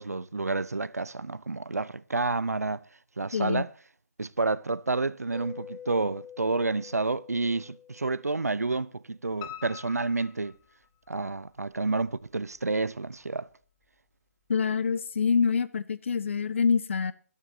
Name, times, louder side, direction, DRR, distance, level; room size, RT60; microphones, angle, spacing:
voice 1, 0.0-2.8 3.2-3.7 4.2-10.5 11.1-13.5, right 3 dB, 85° right, 0.8 m, -29 dB
voice 2, 3.3-3.6 14.5-17.1, left 5 dB, 55° left, 1.2 m, -26 dB
Mallet percussion, 5.3-8.8, left 7 dB, ahead, 6.7 m, -47 dB
Piano, 9.4-11.3 11.7-12.6 12.9-13.0 13.5-13.6 13.8-13.9, left 12 dB, 20° left, 0.8 m, -45 dB
22.5 x 12.5 x 2.8 m
figure-of-eight pair, 150°, 8 cm